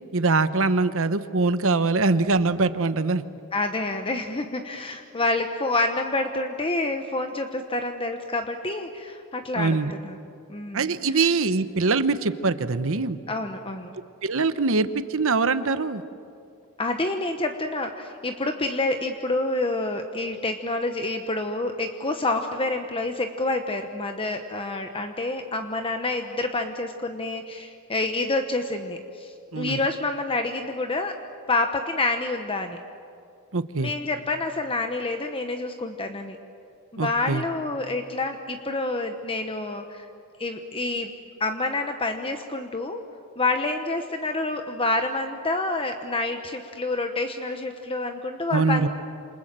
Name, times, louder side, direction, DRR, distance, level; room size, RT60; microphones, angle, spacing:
voice 1, 0.1-3.2 9.6-9.9 10.7-13.2 14.2-16.0 29.5-29.8 33.5-33.9 37.0-37.4 48.5-48.9, right 3 dB, 65° right, 12 dB, 1.0 m, -23 dB
voice 2, 3.5-9.8 10.0-10.2 10.5-11.3 13.3-13.9 16.8-31.2 31.5-32.8 33.8-36.4 36.9-40.1 40.4-41.1 41.4-43.0 43.4-48.9, left 2 dB, 25° left, 6 dB, 1.1 m, -28 dB
28.5 x 27.5 x 7.6 m, 2.5 s
head